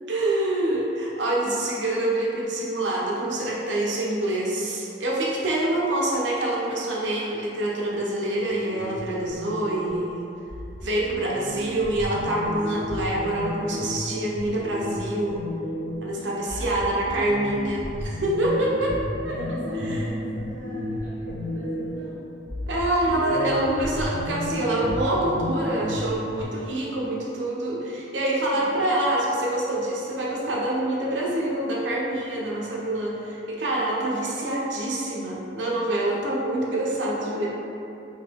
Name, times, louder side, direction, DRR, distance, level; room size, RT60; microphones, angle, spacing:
voice 1, 0.1-10.3 10.8-15.4 16.0-19.0 19.2-20.0 22.7-37.5, right 1 dB, 85° right, -4 dB, 0.7 m, -26 dB
sound 1, 8.5-10.1 10.5-16.1 16.5-22.1 22.5-26.4, left 1 dB, 80° left, 0.7 m, -32 dB
voice 2, 11.1-11.7 16.1-17.1 19.3-22.3 28.5-28.8 36.8-37.5, equal, 40° right, -9 dB, 1.0 m, -41 dB
3.2 x 2.9 x 3.4 m, 2.8 s
head